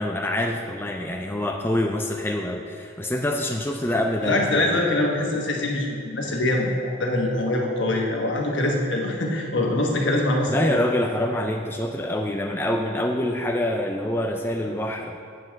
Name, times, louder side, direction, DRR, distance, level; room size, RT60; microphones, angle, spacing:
voice 1, 0.0-4.8 10.5-15.2, left 1 dB, 10° left, 1 dB, 0.4 m, -26 dB
voice 2, 4.2-10.8, left 1 dB, 70° left, 0 dB, 1.3 m, -24 dB
7.7 x 5.4 x 7.4 m, 2.2 s
head